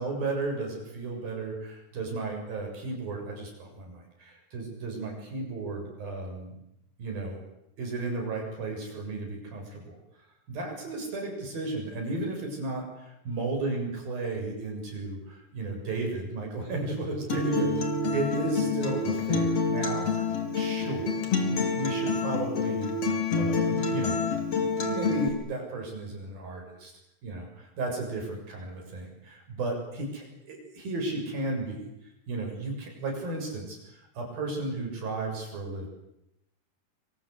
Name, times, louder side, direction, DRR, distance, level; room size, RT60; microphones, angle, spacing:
voice 1, 0.0-6.6 7.0-7.4 7.8-10.0 10.5-17.8 18.1-21.1 21.5-22.9 23.3-24.2 24.5-26.9 27.2-31.8 32.3-35.9, right 2 dB, 55° right, 2 dB, 8.8 m, -34 dB
Acoustic guitar, 17.3-25.3, left 4 dB, 35° left, 4.5 m, -27 dB
26.5 x 24.5 x 8.3 m, 0.83 s
omnidirectional pair, 5.0 m